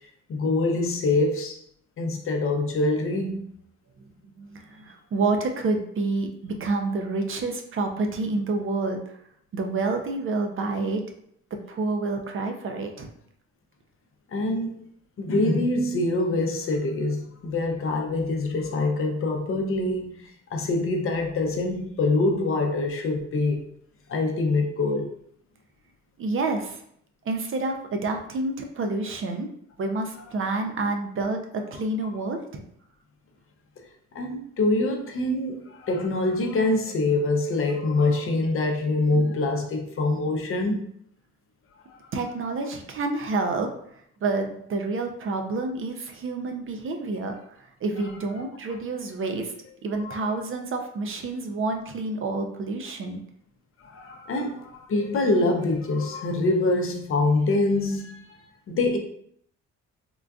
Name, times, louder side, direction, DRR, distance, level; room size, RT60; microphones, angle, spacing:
voice 1, 0.3-1.6 2.0-3.4 14.3-14.7 15.2-20.1 20.5-23.6 24.1-25.1 34.1-40.8 41.9-42.0 50.0-50.2 53.8-59.0, left 2 dB, 45° left, 3 dB, 0.6 m, -25 dB
voice 2, 4.4-9.2 9.5-11.0 11.5-13.1 26.2-26.8 27.3-29.5 29.8-32.6 42.1-43.7 44.2-49.5 49.8-53.2, right 3 dB, 45° right, 5 dB, 0.5 m, -28 dB
3.7 x 2.3 x 2.3 m, 0.67 s
cardioid pair, 90°, 30 cm